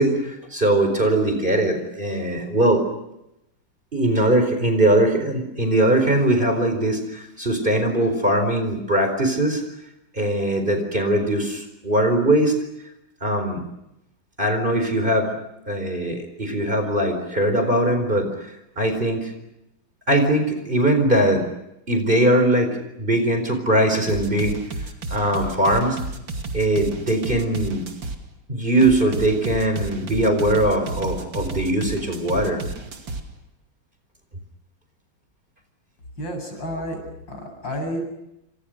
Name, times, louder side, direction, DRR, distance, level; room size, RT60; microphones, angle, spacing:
voice 1, 0.0-2.8 3.9-9.6 10.2-12.5 13.2-13.6 14.4-15.3 15.7-18.3 18.8-19.3 20.1-21.4 21.9-22.7 23.0-24.6 25.1-26.0 26.5-27.8 28.5-32.6, right 1 dB, 25° right, 6 dB, 4.6 m, -20 dB
sound 1, 24.1-28.2 28.8-33.2, right 2 dB, 70° right, 3.2 m, -32 dB
voice 2, 36.2-37.0 37.3-38.0, equal, 70° left, 4 dB, 8.6 m, -30 dB
29.5 x 27.0 x 6.5 m, 0.87 s
omnidirectional pair, 2.2 m